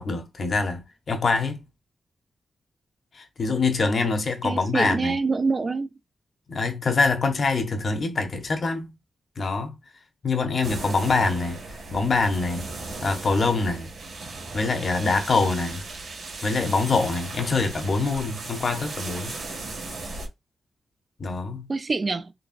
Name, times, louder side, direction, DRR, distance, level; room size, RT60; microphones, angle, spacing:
voice 1, 0.0-1.6 3.1-5.2 6.5-8.9 9.4-9.7 10.2-11.6 11.9-12.7 13.0-13.9 14.5-15.8 16.4-19.3 21.2-21.7, left 3 dB, 45° left, 0.8 m, -24 dB
voice 2, 4.4-5.9 21.7-22.3, right 4 dB, 30° right, 0.3 m, -25 dB
sound 1, 10.6-20.3, right 3 dB, 85° right, 1.7 m, -37 dB
4.0 x 3.3 x 2.4 m
wide cardioid pair, 165°, 0 cm